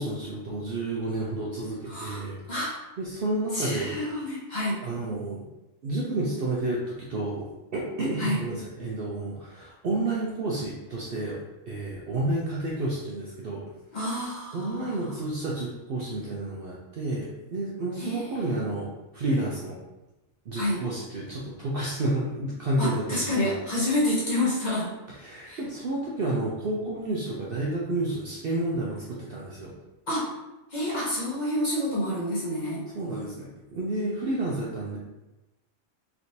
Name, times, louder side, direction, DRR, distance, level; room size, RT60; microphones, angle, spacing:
voice 1, 0.0-2.4 3.0-4.0 4.8-5.5 5.8-7.5 7.7-11.4 11.7-13.6 14.5-18.9 19.1-19.8 20.5-23.5 25.2-29.8 32.9-35.0, right 2 dB, 60° right, -4 dB, 0.6 m, -30 dB
voice 2, 1.9-2.2 2.5-2.8 3.5-4.8 8.2-8.4 13.9-15.1 18.0-18.6 20.6-20.8 22.8-24.9 25.5-25.6 30.1-30.3 30.7-32.9, left 1 dB, 40° left, -6 dB, 0.8 m, -28 dB
3.3 x 2.9 x 2.7 m, 1.0 s
omnidirectional pair, 1.4 m